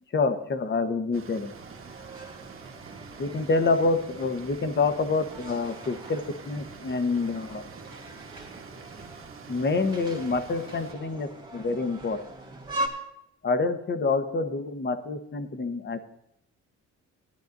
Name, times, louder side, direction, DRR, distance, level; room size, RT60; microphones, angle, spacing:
voice 1, 0.1-1.5 3.2-6.2 6.5-7.6 9.5-12.2 13.4-16.0, left 3 dB, 35° left, 8 dB, 1.1 m, -27 dB
sound 1, 1.1-10.9, right 6 dB, 45° right, 1.3 m, -47 dB
sound 2, 1.5-12.9, right 1 dB, 15° right, 2.1 m, -41 dB
16.5 x 11.0 x 2.6 m, 0.79 s
cardioid pair, 90°, 30 cm